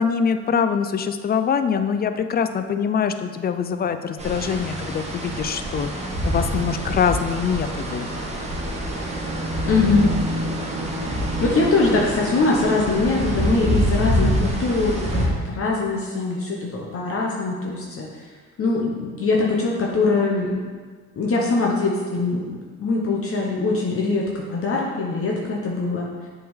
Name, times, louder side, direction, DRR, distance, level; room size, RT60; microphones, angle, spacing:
voice 1, 0.0-5.9 6.2-8.1 11.0-11.1, left 6 dB, 30° left, 8 dB, 0.4 m, -23 dB
sound 1, 4.2-15.3, equal, 20° right, 1.3 m, -26 dB
voice 2, 9.7-10.1 11.4-18.2 18.6-20.5 21.2-26.1, left 3 dB, 50° left, -2 dB, 0.9 m, -22 dB
7.5 x 3.7 x 3.5 m, 1.6 s
cardioid pair, 90°, 30 cm